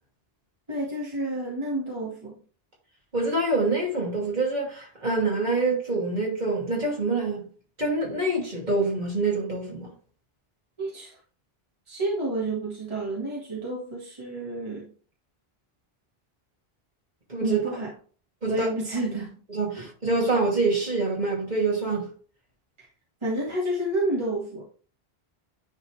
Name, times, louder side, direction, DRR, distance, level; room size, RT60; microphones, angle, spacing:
voice 1, 0.7-2.4 10.8-11.1 11.9-14.9 17.4-17.9 18.5-19.4 19.8-19.9 23.2-24.6, right 1 dB, 30° right, 1.8 m, -30 dB
voice 2, 3.1-7.5 7.8-9.9 17.3-17.6 18.4-18.7 19.5-22.1, right 3 dB, 45° right, 2.6 m, -26 dB
9.6 x 4.1 x 3.3 m
omnidirectional pair, 1.0 m